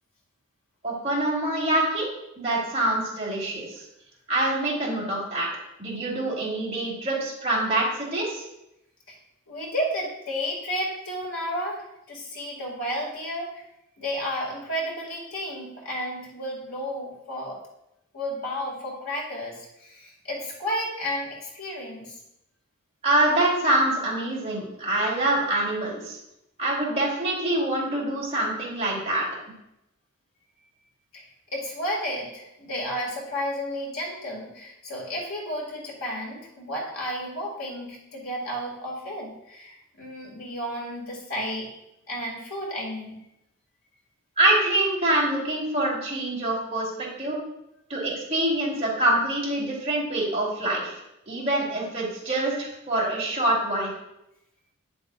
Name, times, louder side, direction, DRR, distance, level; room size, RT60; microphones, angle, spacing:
voice 1, 0.8-2.1 2.4-3.7 4.3-5.5 5.8-8.4 23.0-26.2 26.6-29.2 44.4-47.4 47.9-51.0 51.3-53.9, right 1 dB, 30° right, -5 dB, 3.1 m, -25 dB
voice 2, 9.5-13.6 14.0-17.6 18.1-22.2 31.1-31.2 31.5-41.7 42.1-43.1, equal, 65° left, -2 dB, 2.4 m, -32 dB
10.0 x 7.8 x 2.5 m, 0.83 s
head